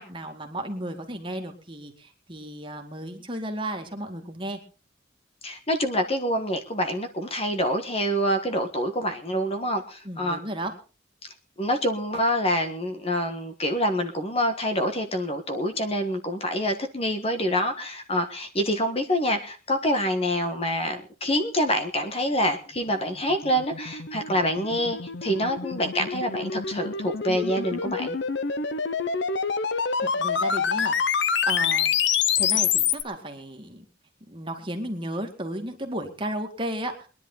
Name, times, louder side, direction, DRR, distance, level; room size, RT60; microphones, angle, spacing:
voice 1, 0.0-4.6 10.0-10.7 30.0-33.8 34.3-37.1, right 1 dB, 25° right, 3 dB, 2.2 m, -34 dB
voice 2, 5.4-10.4 11.6-28.2, equal, 30° left, 6 dB, 1.5 m, -26 dB
sound 1, 23.1-33.0, left 6 dB, 65° left, 0.9 m, -27 dB
22.0 x 11.0 x 4.0 m, 0.35 s
head